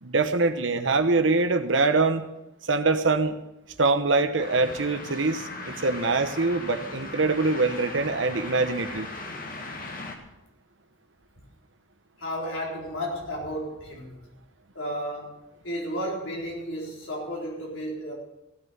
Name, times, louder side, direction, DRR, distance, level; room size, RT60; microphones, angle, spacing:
voice 1, 0.0-2.3 2.7-3.4 3.8-9.1, right 3 dB, 70° right, 8 dB, 1.1 m, -24 dB
sound 1, 4.4-10.2, left 2 dB, 45° left, 1.9 m, -38 dB
voice 2, 12.2-14.2 14.7-18.1, equal, 80° left, -3 dB, 4.2 m, -33 dB
16.0 x 6.9 x 8.8 m, 0.95 s
head